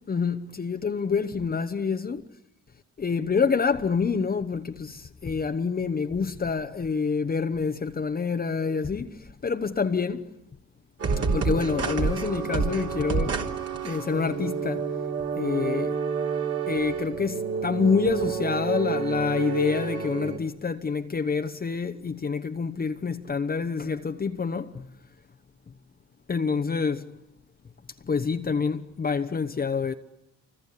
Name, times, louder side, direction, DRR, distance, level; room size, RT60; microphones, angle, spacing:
voice 1, 0.1-2.2 3.0-10.3 11.2-13.4 13.8-14.9 15.4-16.0 16.7-24.9 26.3-27.1 28.1-29.9, left 5 dB, 30° left, 1.0 m, -27 dB
sound 1, 11.0-20.4, right 5 dB, 55° right, 3.6 m, -29 dB
28.0 x 25.5 x 8.4 m
cardioid pair, 90°, 30 cm